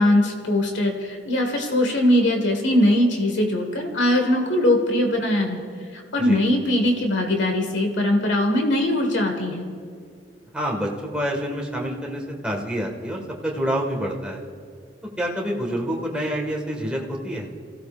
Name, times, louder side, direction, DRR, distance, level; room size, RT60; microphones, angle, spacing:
voice 1, 0.0-5.6 5.9-9.7, left 1 dB, 85° left, 3 dB, 1.7 m, -21 dB
voice 2, 10.5-14.4 15.2-17.5, equal, 5° right, -2 dB, 1.8 m, -27 dB
28.5 x 16.0 x 2.6 m, 2.2 s
head